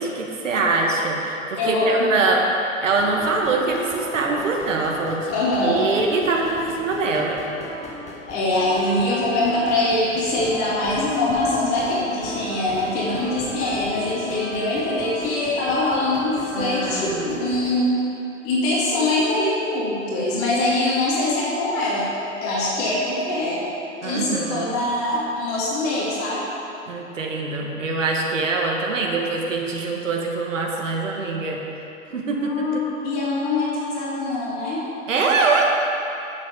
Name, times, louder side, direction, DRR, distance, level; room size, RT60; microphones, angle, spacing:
voice 1, 0.0-2.4 2.8-5.3 5.6-7.4 16.5-17.3 24.0-24.8 26.9-31.6 32.1-32.8 35.1-35.7, right 3 dB, 70° right, 0 dB, 1.8 m, -23 dB
voice 2, 1.6-2.1 5.3-5.8 8.3-18.0 18.4-22.1 22.4-23.7 24.0-26.4 32.3-34.8, left 2 dB, 35° left, -6 dB, 2.7 m, -23 dB
sound 1, 3.0-17.8, left 1 dB, 15° left, 1.3 m, -37 dB
10.0 x 7.7 x 5.2 m, 2.8 s
figure-of-eight pair, 105°, 40 cm